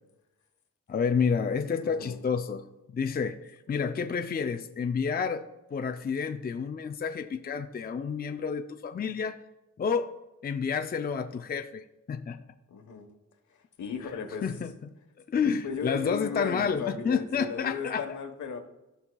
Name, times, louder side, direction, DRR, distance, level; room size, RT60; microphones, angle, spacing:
voice 1, 0.9-2.6 2.9-9.4 9.8-10.1 10.4-12.4 14.4-14.7 15.3-18.2, left 6 dB, 35° left, 7 dB, 0.4 m, -30 dB
voice 2, 1.6-2.2 12.7-13.1 13.8-14.5 15.6-18.6, left 5 dB, 80° left, 5 dB, 1.2 m, -36 dB
16.5 x 5.6 x 2.3 m, 1.0 s
cardioid pair, 85°, 29 cm